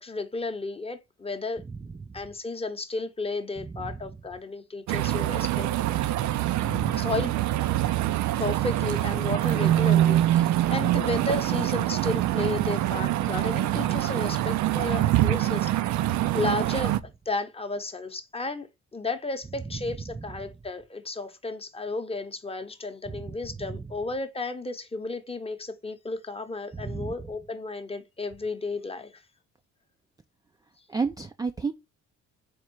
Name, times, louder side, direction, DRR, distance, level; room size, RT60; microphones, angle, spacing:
voice 1, 0.0-1.6 2.1-5.7 6.6-7.3 8.4-15.7 16.3-18.7 18.9-29.1, left 3 dB, 20° left, 0.8 m, -33 dB
voice 2, 1.7-2.0 3.6-4.2 6.6-7.1 14.7-15.2 19.6-20.2 23.1-23.9 26.7-27.1 30.9-31.7, right 4 dB, 15° right, 0.3 m, -34 dB
sound 1, 4.9-17.0, right 14 dB, 70° right, 0.4 m, -25 dB
4.4 x 2.4 x 4.5 m
cardioid pair, 90°, 30 cm